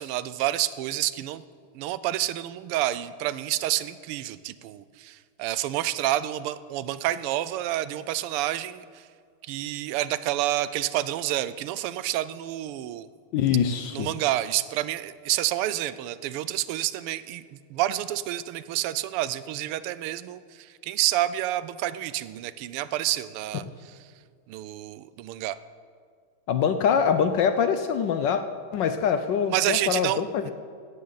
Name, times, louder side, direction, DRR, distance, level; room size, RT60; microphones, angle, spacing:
voice 1, 0.0-1.4 1.7-9.1 9.4-13.1 13.9-24.0 24.5-25.6 29.5-30.2, right 14 dB, 85° right, 15 dB, 1.5 m, -29 dB
voice 2, 13.3-14.1 26.5-28.4 28.7-30.5, left 7 dB, 70° left, 9 dB, 1.1 m, -24 dB
17.0 x 13.0 x 4.0 m, 2.1 s
omnidirectional pair, 2.4 m